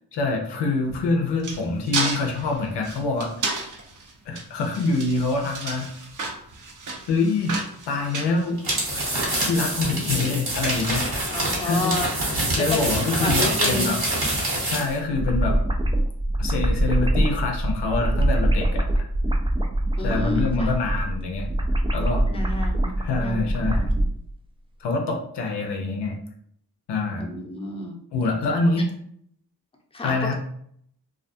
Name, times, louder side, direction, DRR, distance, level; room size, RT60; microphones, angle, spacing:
voice 1, 0.1-3.3 4.3-5.9 7.1-7.5 7.9-8.6 8.9-9.1 9.4-12.0 12.5-14.0 14.6-15.6 16.4-18.8 20.0-21.5 21.9-22.2 23.0-23.9 24.8-26.2 26.9-27.3 28.1-28.9 30.0-30.3, left 3 dB, 90° left, 2 dB, 0.6 m, -25 dB
sound 1, 0.8-9.1, right 3 dB, 50° right, 0.7 m, -32 dB
sound 2, 8.6-14.9, right 1 dB, 65° right, 1.4 m, -25 dB
voice 2, 9.9-10.4 11.3-12.1 12.6-14.0 20.0-20.7 22.3-23.9 27.2-28.0 29.9-30.1, left 2 dB, 15° left, 0 dB, 0.7 m, -31 dB
sound 3, 14.9-24.1, right 1 dB, 15° right, 0.3 m, -23 dB
2.4 x 2.2 x 2.6 m, 0.67 s
cardioid pair, 50°, 40 cm